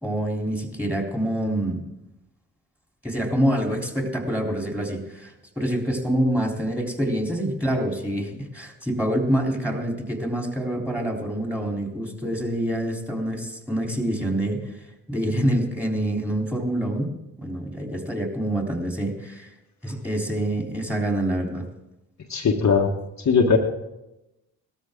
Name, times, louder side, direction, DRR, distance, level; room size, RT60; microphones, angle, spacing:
voice 1, 0.0-1.8 3.0-14.7 15.1-17.1 17.4-19.5 19.8-21.7, right 1 dB, 5° right, 1 dB, 3.8 m, -26 dB
voice 2, 22.3-22.9 23.2-23.6, left 5 dB, 40° left, 1 dB, 1.5 m, -19 dB
18.5 x 13.5 x 3.8 m, 0.94 s
hypercardioid pair, 50°, 42 cm